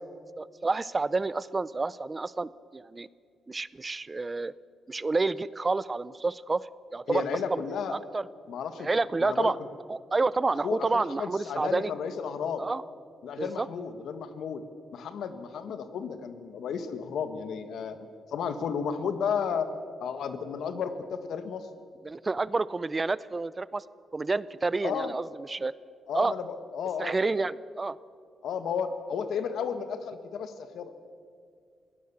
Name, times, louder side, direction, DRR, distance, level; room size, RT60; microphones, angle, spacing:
voice 1, 0.4-3.1 3.5-4.5 4.9-6.6 6.9-7.2 7.5-7.6 7.9-8.3 8.8-9.6 9.9-11.9 12.6-12.8 13.4-13.7 22.0-23.8 24.1-25.7 26.1-26.3 27.0-28.0, right 3 dB, 25° right, 19 dB, 0.5 m, -29 dB
voice 2, 7.1-8.0 8.5-8.9 9.2-9.5 10.6-12.7 13.2-14.6 14.9-18.0 18.3-19.7 20.0-21.7 24.8-25.1 26.1-27.5 28.4-30.9, left 7 dB, 75° left, 10 dB, 1.6 m, -33 dB
22.0 x 18.0 x 7.0 m, 2.2 s
cardioid pair, 110°, 0 cm